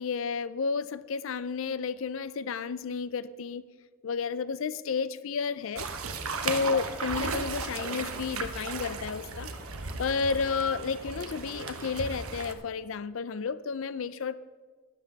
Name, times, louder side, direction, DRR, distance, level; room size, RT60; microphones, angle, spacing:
voice 1, 0.0-3.6 4.0-5.9 6.4-9.5 10.0-14.3, left 5 dB, 65° left, 0.5 m, -31 dB
sound 1, 5.7-12.5, right 4 dB, 80° right, 1.1 m, -35 dB
12.0 x 10.5 x 4.7 m
head